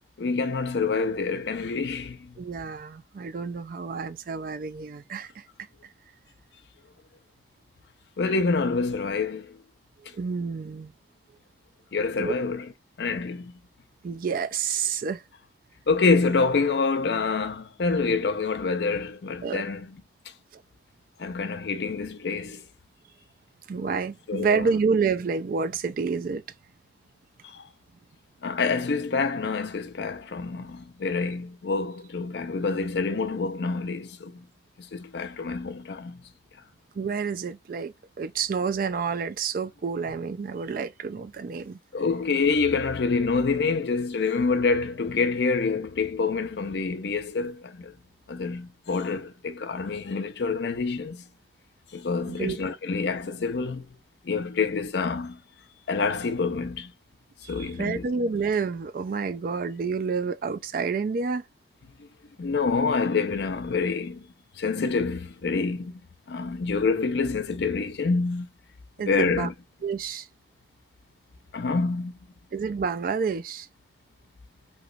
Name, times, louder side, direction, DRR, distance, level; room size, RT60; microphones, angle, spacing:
voice 1, 0.2-2.4 8.2-9.6 11.9-12.7 13.0-13.5 15.9-20.0 21.2-22.6 24.3-24.7 27.4-27.7 28.4-34.4 34.8-36.2 41.9-47.9 48.3-51.2 51.9-53.9 54.2-55.4 55.9-56.9 57.5-58.1 62.4-64.3 64.6-65.9 66.3-68.5 69.1-69.5 71.5-72.1, left 4 dB, 65° left, 0.5 m, -27 dB
voice 2, 2.4-5.4 10.1-10.9 12.2-12.3 14.0-15.2 19.4-19.6 20.5-20.6 23.7-26.4 37.0-41.8 52.3-52.6 57.4-61.4 69.0-69.5 69.8-70.3 72.5-73.7, right 5 dB, 50° right, 0.4 m, -29 dB
3.1 x 2.9 x 2.4 m
head